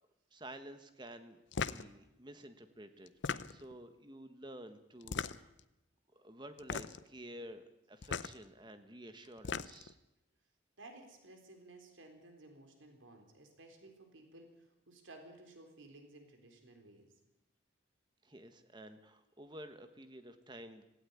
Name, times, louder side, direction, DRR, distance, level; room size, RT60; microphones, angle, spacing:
voice 1, 0.3-3.1 3.5-5.5 6.1-10.0 18.2-20.8, right 1 dB, 25° right, 9 dB, 1.4 m, -51 dB
sound 1, 1.5-1.9 3.1-3.8 5.0-5.6 6.6-7.1 8.0-8.3 9.2-9.9, left 5 dB, 70° left, 0.7 m, -38 dB
voice 2, 10.8-17.1, right 2 dB, 90° right, 4 dB, 3.9 m, -56 dB
17.0 x 16.0 x 9.7 m, 0.89 s
head